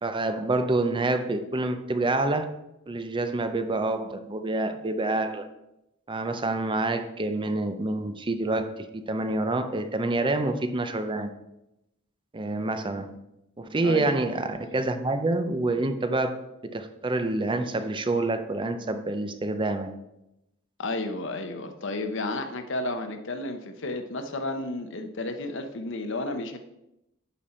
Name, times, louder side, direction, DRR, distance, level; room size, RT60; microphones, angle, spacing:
voice 1, 0.0-2.5 2.9-5.5 6.1-11.3 12.3-13.2 13.6-19.9, right 2 dB, 25° right, 9 dB, 0.6 m, -27 dB
voice 2, 13.8-14.2 20.8-26.6, left 2 dB, 65° left, 7 dB, 0.9 m, -32 dB
10.0 x 5.5 x 4.3 m, 0.89 s
head